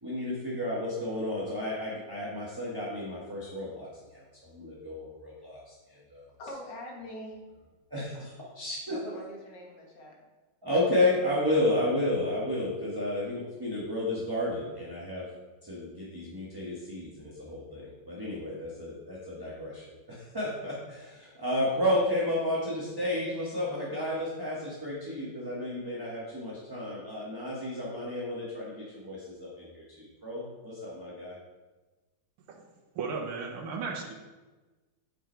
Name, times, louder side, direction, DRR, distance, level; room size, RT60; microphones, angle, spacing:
voice 1, 0.0-6.3 7.9-9.0 10.6-15.3 15.6-31.4, left 1 dB, 15° right, -7 dB, 1.2 m, -32 dB
voice 2, 6.4-7.4 8.9-10.2, left 1 dB, 60° left, -1 dB, 2.0 m, -43 dB
voice 3, 33.0-34.1, right 4 dB, 90° right, 0 dB, 1.8 m, -35 dB
7.9 x 5.1 x 4.6 m, 1.2 s
omnidirectional pair, 2.3 m